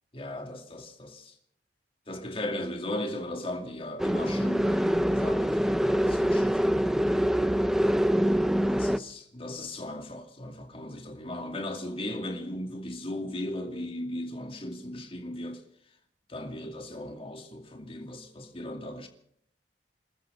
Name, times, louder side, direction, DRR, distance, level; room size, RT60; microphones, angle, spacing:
voice 1, 0.1-1.3 2.1-7.1 8.7-15.6 16.3-19.1, left 1 dB, 30° left, 2.4 m, -37 dB
sound 1, 4.0-9.0, equal, 5° right, 0.6 m, -25 dB
27.5 x 13.5 x 3.8 m
head